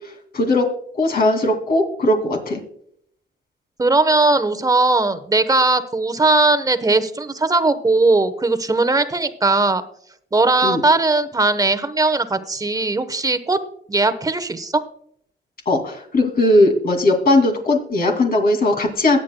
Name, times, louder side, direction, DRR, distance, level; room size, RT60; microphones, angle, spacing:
voice 1, 0.3-0.7 0.9-2.6 10.6-10.8 15.7-19.2, left 2 dB, 50° left, 3 dB, 2.5 m, -18 dB
voice 2, 3.8-9.8 10.3-13.6 13.9-14.8, right 3 dB, 20° right, 12 dB, 0.9 m, -18 dB
22.0 x 8.5 x 2.2 m, 0.67 s
cardioid pair, 90°, 20 cm